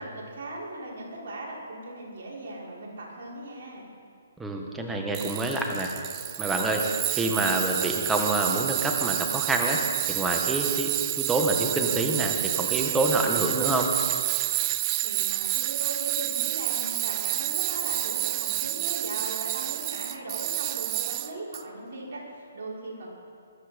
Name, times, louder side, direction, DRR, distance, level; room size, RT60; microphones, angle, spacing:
voice 1, 0.0-3.8 15.0-23.1, right 1 dB, 55° right, -5 dB, 5.6 m, -38 dB
voice 2, 4.4-5.9 6.4-6.8 7.1-9.8 10.1-10.9 11.2-13.9, right 2 dB, 5° right, 1 dB, 1.6 m, -27 dB
Tools, 5.1-21.6, right 18 dB, 25° right, 0.4 m, -29 dB
21.5 x 12.0 x 5.3 m, 2.3 s
hypercardioid pair, 150°, 0 cm